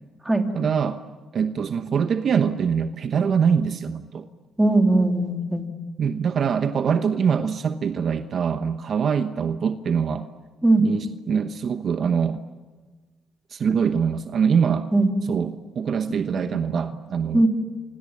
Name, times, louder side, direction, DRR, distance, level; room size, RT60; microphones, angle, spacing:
voice 1, 0.5-1.0 1.3-4.3 6.0-10.2 10.8-12.4 13.5-14.9 15.3-17.5, right 6 dB, 55° right, 9 dB, 1.0 m, -23 dB
voice 2, 4.6-5.7 10.6-10.9 14.9-15.1 16.3-16.4 17.3-17.5, right 2 dB, 10° right, 3 dB, 3.1 m, -19 dB
29.0 x 26.0 x 7.4 m, 1.4 s
cardioid pair, 90°, 0 cm